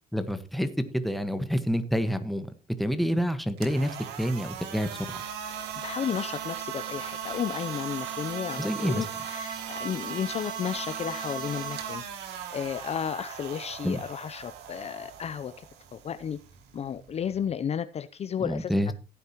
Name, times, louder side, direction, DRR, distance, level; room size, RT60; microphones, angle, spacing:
voice 1, 0.1-0.7 0.9-2.5 2.8-5.2 8.6-9.0 13.8-14.0 18.4-18.9, equal, ahead, 9 dB, 1.4 m, -28 dB
sound 1, 3.5-17.5, right 8 dB, 90° right, 2.0 m, -38 dB
voice 2, 5.8-12.0 12.5-15.6 15.9-16.4 16.7-18.9, left 8 dB, 40° left, 11 dB, 0.6 m, -33 dB
15.5 x 9.3 x 3.0 m, 0.32 s
cardioid pair, 110°, 17 cm